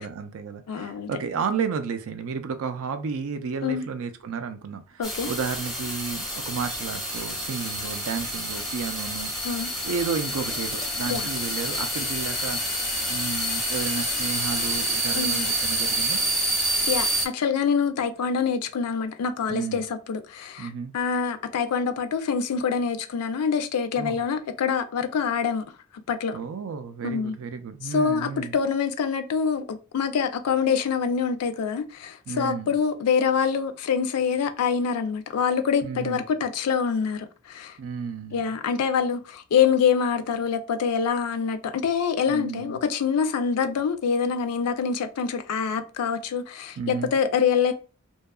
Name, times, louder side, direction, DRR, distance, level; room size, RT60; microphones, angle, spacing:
voice 1, 0.0-9.3 9.8-12.6 13.0-16.2 19.5-19.8 20.6-20.9 24.0-24.2 26.3-28.6 32.3-32.8 35.8-36.2 37.8-38.5 42.3-42.8 46.8-47.1, right 5 dB, 65° right, 0.4 m, -32 dB
voice 2, 0.7-1.1 3.6-3.8 5.0-5.3 9.4-9.7 11.1-11.3 15.1-15.4 16.9-25.6 26.1-26.4 27.0-27.4 27.9-37.7 38.3-47.7, left 6 dB, 80° left, 0.4 m, -25 dB
sound 1, 5.0-17.3, right 1 dB, ahead, 0.6 m, -28 dB
2.7 x 2.3 x 2.2 m
head